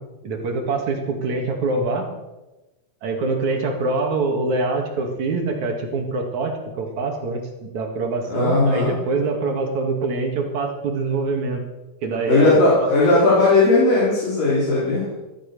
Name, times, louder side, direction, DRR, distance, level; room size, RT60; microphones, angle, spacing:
voice 1, 0.2-2.1 3.0-11.6 12.0-12.9, right 3 dB, 60° right, 3 dB, 3.5 m, -24 dB
voice 2, 8.3-8.9 12.3-15.1, left 2 dB, 85° left, -8 dB, 6.0 m, -17 dB
16.0 x 12.5 x 6.9 m, 1.1 s
omnidirectional pair, 3.8 m